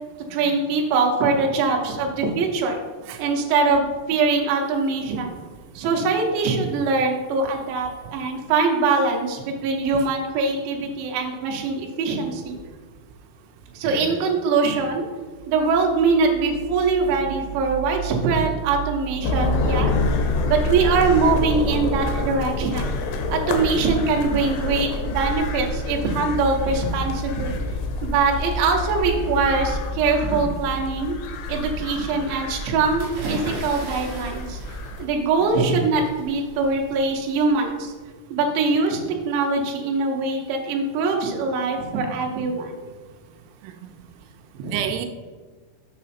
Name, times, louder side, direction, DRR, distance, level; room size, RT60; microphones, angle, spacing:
voice 1, 0.3-2.8 3.2-5.4 5.8-12.6 13.7-15.1 15.5-19.9 20.5-22.9 23.3-27.6 28.0-31.2 31.5-34.6 35.0-37.9 38.3-39.0 39.3-42.8 44.5-44.8, right 4 dB, 75° right, 0 dB, 3.2 m, -22 dB
voice 2, 13.9-14.2 23.5-23.8 31.8-32.1 35.5-35.6 43.6-43.9 44.7-45.1, right 9 dB, 90° right, 5 dB, 3.2 m, -33 dB
sound 1, 19.2-35.1, left 2 dB, 85° left, 3.3 m, -27 dB
sound 2, 33.0-37.8, right 1 dB, 50° right, 2.9 m, -37 dB
7.3 x 6.3 x 4.3 m, 1.4 s
omnidirectional pair, 5.8 m